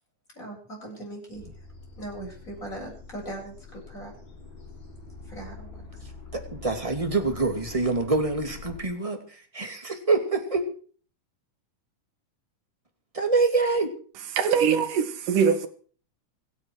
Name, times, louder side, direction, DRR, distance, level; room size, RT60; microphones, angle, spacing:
voice 1, 0.3-1.7 2.0-4.1 5.2-6.1, right 1 dB, 25° left, 8.3 m, -40 dB
sound 1, 1.3-8.8, left 4 dB, 40° left, 5.1 m, -45 dB
voice 2, 6.3-10.6 13.1-13.9, right 3 dB, 10° right, 2.1 m, -25 dB
voice 3, 14.3-15.7, right 6 dB, 80° right, 3.3 m, -22 dB
26.0 x 9.6 x 4.7 m
omnidirectional pair, 3.7 m